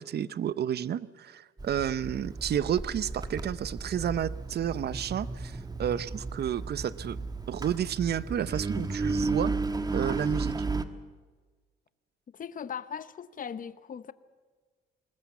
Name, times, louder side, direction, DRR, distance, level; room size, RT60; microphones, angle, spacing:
voice 1, 0.0-7.2 7.5-9.5 9.9-10.5, right 9 dB, 55° right, 0.7 m, -31 dB
Engine, 1.6-10.8, right 3 dB, 20° right, 1.3 m, -34 dB
voice 2, 12.3-14.1, left 7 dB, 45° left, 0.9 m, -39 dB
21.5 x 20.0 x 7.2 m
cardioid pair, 90°, 20 cm